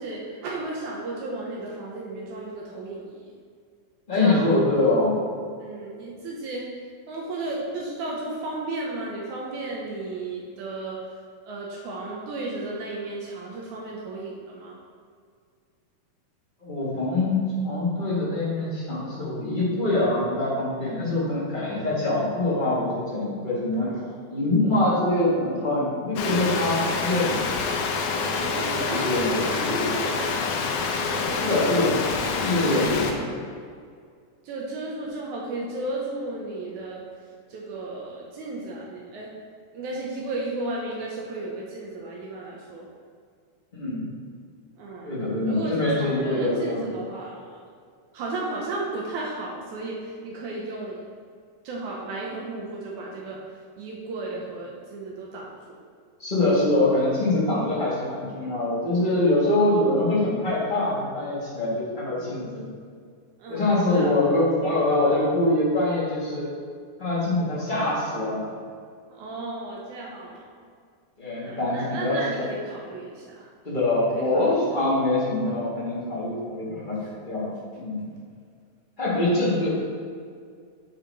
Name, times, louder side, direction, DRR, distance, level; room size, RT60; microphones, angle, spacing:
voice 1, 0.0-3.3 4.2-4.9 5.6-6.7 7.1-11.2 11.5-14.8 23.7-24.3 28.1-30.3 31.1-31.7 32.4-33.5 34.4-39.3 39.7-42.9 44.8-45.2 45.4-47.6 48.1-51.1 51.6-55.8 63.4-64.3 69.1-70.7 71.4-73.5 74.2-74.6 77.0-77.1, right 2 dB, 75° right, -3 dB, 2.2 m, -34 dB
voice 2, 4.1-5.2 16.6-23.9 24.3-27.5 28.5-29.4 29.7-29.8 31.4-32.0 32.4-33.2 43.7-44.1 45.0-46.8 56.2-62.7 63.5-66.5 67.0-68.5 71.2-72.2 73.6-77.0 77.2-78.1 79.0-79.7, left 2 dB, 35° left, -8 dB, 0.7 m, -24 dB
sound 1, 26.2-33.1, left 5 dB, 80° left, 2.2 m, -27 dB
8.3 x 4.6 x 4.0 m, 2.1 s
omnidirectional pair, 3.6 m